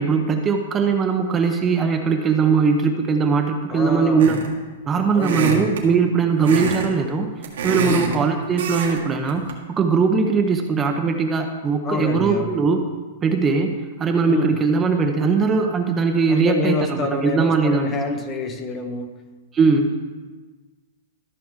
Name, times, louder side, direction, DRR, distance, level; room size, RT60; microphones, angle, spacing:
voice 1, 0.0-4.4 4.9-7.3 7.6-9.5 9.8-12.8 13.2-18.0 19.5-20.0, right 5 dB, 20° right, 4 dB, 0.7 m, -20 dB
voice 2, 3.7-4.4 5.1-5.8 7.7-8.2 11.8-12.7 14.3-14.6 16.3-19.2, left 4 dB, 20° left, 6 dB, 0.8 m, -27 dB
sound 1, 4.2-4.6 5.2-5.8 6.4-6.9 7.2-8.2 8.6-9.0 9.3-9.5, right 4 dB, 80° right, 1.8 m, -25 dB
13.5 x 6.0 x 3.6 m, 1.3 s
hypercardioid pair, 140°, 0 cm